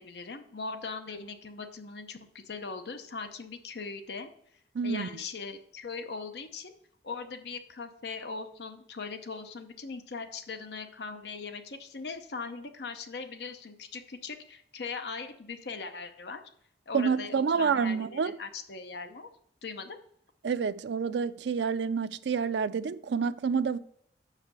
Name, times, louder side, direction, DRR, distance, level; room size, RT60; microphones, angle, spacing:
voice 1, 0.0-4.3 4.8-6.7 7.0-16.4 16.9-19.3 19.6-20.0, left 4 dB, 70° left, 0.7 m, -40 dB
voice 2, 4.7-5.1 16.9-18.4 20.4-23.8, right 6 dB, 80° right, 0.4 m, -28 dB
6.5 x 4.9 x 6.8 m
head